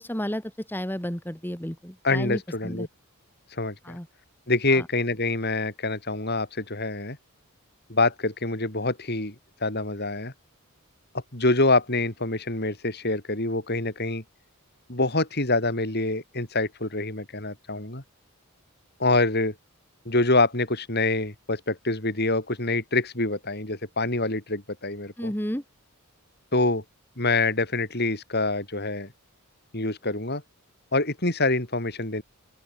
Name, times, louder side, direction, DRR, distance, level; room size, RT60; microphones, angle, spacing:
voice 1, 0.0-2.9 3.8-4.1 4.7-4.9 25.2-25.6, equal, 10° left, 2.7 m, -32 dB
voice 2, 2.0-2.9 3.6-4.0 4.5-7.2 7.9-9.4 9.6-10.3 11.3-14.2 14.9-18.0 19.0-19.5 20.1-25.3 26.5-26.8 27.2-29.1 29.7-30.4 30.9-32.2, left 2 dB, 45° left, 5.4 m, -25 dB
open air
head